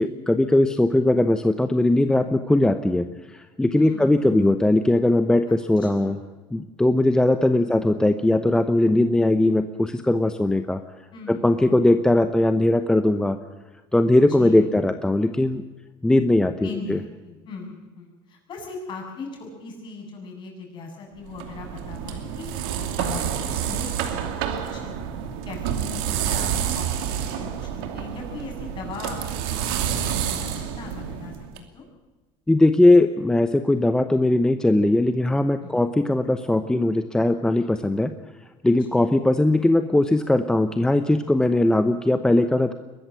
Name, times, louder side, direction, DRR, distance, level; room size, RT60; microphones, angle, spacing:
voice 1, 0.0-6.2 6.5-10.8 11.3-13.4 13.9-15.6 16.0-17.0 32.5-38.1 38.6-42.7, left 1 dB, 5° left, 9 dB, 0.8 m, -20 dB
voice 2, 3.7-4.5 5.8-6.2 7.5-7.9 11.1-12.3 14.3-14.7 16.6-25.0 25.4-29.2 29.5-31.8 35.6-35.9 38.9-39.1, left 4 dB, 45° left, 1 dB, 7.5 m, -39 dB
sound 1, 21.2-31.6, right 9 dB, 90° right, 2.6 m, -28 dB
22.5 x 14.0 x 9.4 m, 1.2 s
cardioid pair, 125°, 11 cm